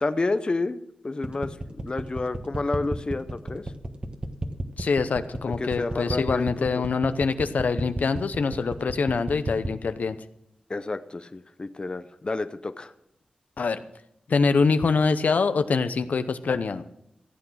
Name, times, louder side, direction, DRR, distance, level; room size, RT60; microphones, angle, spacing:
voice 1, 0.0-3.6 5.4-6.8 10.7-12.9, left 3 dB, 35° left, 11 dB, 0.6 m, -30 dB
sound 1, 1.2-9.8, right 2 dB, 40° right, 1.4 m, -32 dB
voice 2, 4.8-10.2 13.6-13.8 14.3-16.8, left 4 dB, 75° left, 10 dB, 0.7 m, -24 dB
15.0 x 8.4 x 6.3 m, 0.80 s
wide cardioid pair, 75°, 3 cm